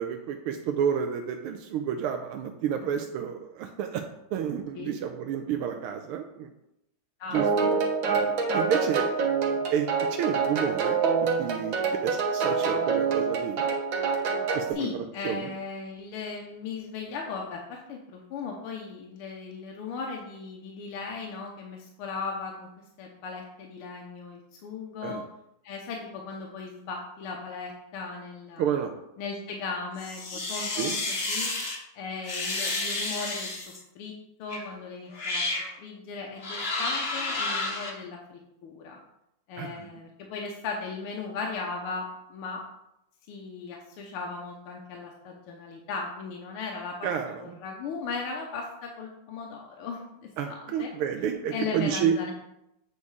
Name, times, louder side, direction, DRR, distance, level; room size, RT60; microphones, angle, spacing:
voice 1, 0.0-4.0 4.3-6.5 7.3-7.7 8.1-9.1 9.7-11.8 12.0-13.7 14.5-15.5 25.0-25.3 28.6-28.9 30.8-30.9 39.6-39.9 47.0-47.6 50.4-52.2, right 8 dB, 90° right, 5 dB, 1.5 m, -30 dB
voice 2, 7.2-7.8 8.5-8.7 14.8-22.7 23.0-25.2 25.6-28.7 29.2-31.5 32.0-34.1 34.4-39.0 39.5-42.6 43.3-47.1 47.4-50.9 51.5-52.3, left 4 dB, 80° left, 0 dB, 1.8 m, -37 dB
sound 1, 7.3-14.7, right 5 dB, 65° right, 1.8 m, -26 dB
sound 2, 30.0-31.8 32.2-33.8 34.5-34.7 35.1-35.7 36.4-37.9, left 2 dB, 35° left, 1.1 m, -31 dB
8.3 x 4.4 x 4.8 m, 0.83 s
omnidirectional pair, 2.4 m